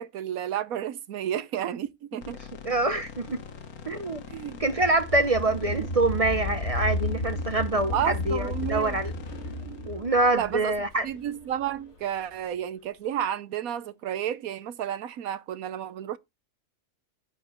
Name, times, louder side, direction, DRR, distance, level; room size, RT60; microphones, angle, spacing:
voice 1, 0.0-2.4 4.3-4.6 7.9-9.0 10.3-10.7 11.0-16.2, right 10 dB, 80° right, 1.2 m, -31 dB
sound 1, 2.2-11.4, left 7 dB, 90° left, 1.6 m, -44 dB
voice 2, 2.6-3.4 3.9-4.2 4.6-9.1 9.8-11.1, right 2 dB, 35° right, 0.6 m, -25 dB
sound 2, 3.0-11.9, left 2 dB, 50° left, 3.0 m, -33 dB
13.5 x 5.3 x 3.0 m
omnidirectional pair, 1.5 m